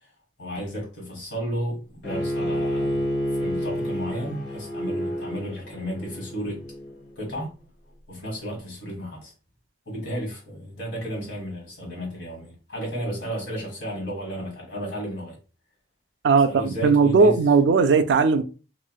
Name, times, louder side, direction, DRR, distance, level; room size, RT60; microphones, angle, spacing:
voice 1, 0.4-3.0 3.3-6.6 7.2-7.5 8.1-9.3 9.8-15.4 16.4-17.4, equal, 85° left, 1.5 m, -33 dB
Bowed string instrument, 2.0-7.1, equal, 70° left, 1.0 m, -29 dB
voice 2, 16.2-18.4, right 4 dB, 85° right, 0.4 m, -18 dB
3.1 x 2.5 x 2.2 m
head